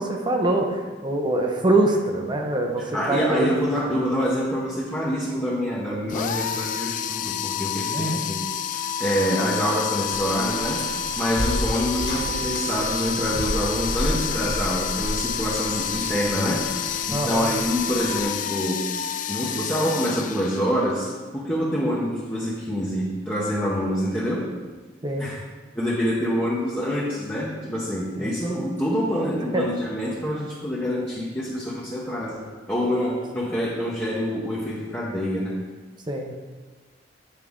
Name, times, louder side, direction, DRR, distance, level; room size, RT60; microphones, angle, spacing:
voice 1, 0.0-3.5 7.9-8.2 11.4-11.5 17.1-17.5 25.0-25.3 28.2-28.4 29.5-29.6 36.1-36.3, right 2 dB, 25° right, 2 dB, 0.7 m, -24 dB
voice 2, 2.8-8.4 8.7-16.7 17.1-18.9 19.3-24.5 25.2-25.4 25.7-35.6, equal, 10° left, -6 dB, 0.9 m, -26 dB
sound 1, 6.1-21.0, left 8 dB, 45° left, 0.3 m, -29 dB
sound 2, 10.1-18.2, left 1 dB, 65° left, 1.6 m, -32 dB
7.9 x 4.8 x 3.7 m, 1.3 s
head